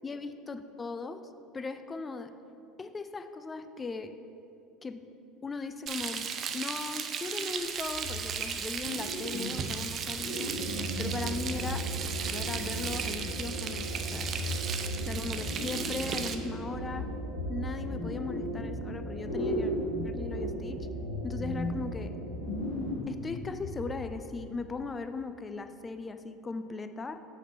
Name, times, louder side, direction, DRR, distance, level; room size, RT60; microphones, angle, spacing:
voice 1, 0.0-1.2 1.5-2.3 2.8-4.2 4.8-5.1 5.4-10.6 11.0-11.9 12.2-14.3 15.1-17.1 17.5-19.7 20.0-20.9 21.2-22.1 22.9-27.2, left 4 dB, 25° left, 10 dB, 0.4 m, -38 dB
Frying (food), 5.9-16.3, right 7 dB, 40° right, 0.5 m, -36 dB
sound 1, 7.8-8.6 8.8-9.8 10.2-13.0 13.9-16.2 16.5-19.0 19.2-24.2, left 1 dB, 75° left, 1.1 m, -37 dB
sound 2, 10.5-22.7, right 2 dB, 85° right, 0.8 m, -38 dB
7.8 x 4.4 x 4.6 m, 2.9 s
figure-of-eight pair, 70°, 0 cm